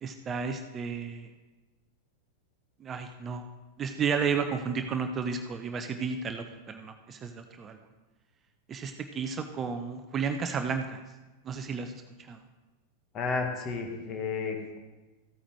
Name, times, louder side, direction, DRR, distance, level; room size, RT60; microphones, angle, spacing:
voice 1, 0.0-1.3 2.8-3.4 3.8-7.8 8.7-11.0 11.4-11.9 12.2-12.4, right 6 dB, 25° right, 7 dB, 0.6 m, -32 dB
voice 2, 13.1-14.8, left 4 dB, 30° left, 3 dB, 1.6 m, -32 dB
14.5 x 8.7 x 3.2 m, 1.2 s
figure-of-eight pair, 90°, 0 cm